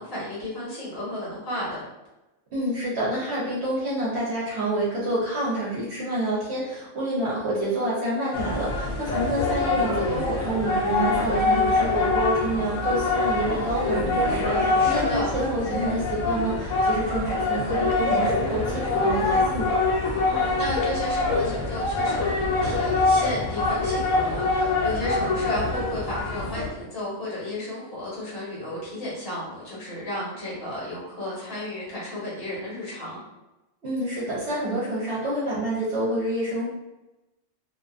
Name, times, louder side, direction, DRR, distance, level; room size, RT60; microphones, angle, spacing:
voice 1, 0.0-1.8 14.8-15.3 20.3-33.2, left 1 dB, 50° left, -7 dB, 1.2 m, -33 dB
voice 2, 2.5-19.8 33.8-36.7, right 1 dB, 65° right, -7 dB, 0.9 m, -28 dB
sound 1, 8.3-26.7, left 3 dB, 85° left, 1.0 m, -24 dB
2.5 x 2.3 x 2.4 m, 0.99 s
omnidirectional pair, 1.3 m